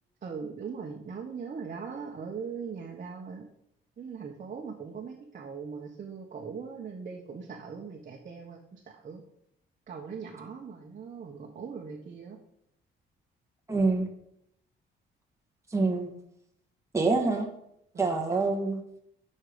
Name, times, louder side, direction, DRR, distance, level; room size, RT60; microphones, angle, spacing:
voice 1, 0.2-3.5 4.0-9.2 9.9-12.4 15.8-15.9 17.9-18.4, right 5 dB, 45° right, 0 dB, 1.3 m, -40 dB
voice 2, 13.7-14.1 15.7-16.1 16.9-17.5 18.0-18.8, right 3 dB, 15° right, 1 dB, 1.6 m, -26 dB
8.1 x 5.5 x 5.2 m, 0.74 s
cardioid pair, 90°, 20 cm